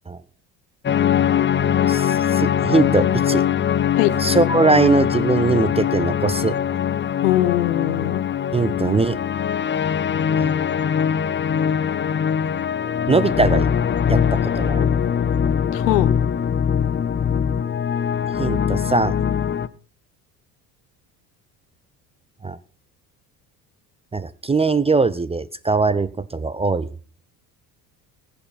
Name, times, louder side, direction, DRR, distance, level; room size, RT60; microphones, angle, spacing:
sound 1, 0.8-19.7, left 8 dB, 25° left, 0.8 m, -21 dB
voice 1, 1.9-3.4 4.2-6.6 8.5-9.2 10.4-10.5 13.1-13.7 14.1-14.2 14.6-14.9 18.4-19.1 22.4-22.6 24.1-26.9, right 3 dB, 15° right, 18 dB, 0.5 m, -20 dB
voice 2, 7.2-8.2 15.7-16.1, left 15 dB, 75° left, 17 dB, 1.0 m, -21 dB
21.0 x 8.4 x 4.2 m, 0.38 s
hypercardioid pair, 65°, 49 cm